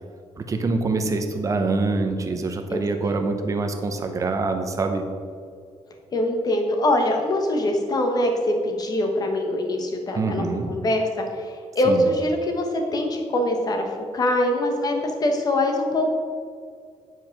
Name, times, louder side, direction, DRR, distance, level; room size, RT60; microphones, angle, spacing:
voice 1, 0.4-5.0 10.1-10.7 11.8-12.1, right 3 dB, 25° right, 5 dB, 0.8 m, -25 dB
voice 2, 2.7-3.1 6.1-16.1, left 1 dB, 30° left, 3 dB, 1.2 m, -23 dB
9.3 x 5.2 x 5.9 m, 2.2 s
cardioid pair, 175°, 12 cm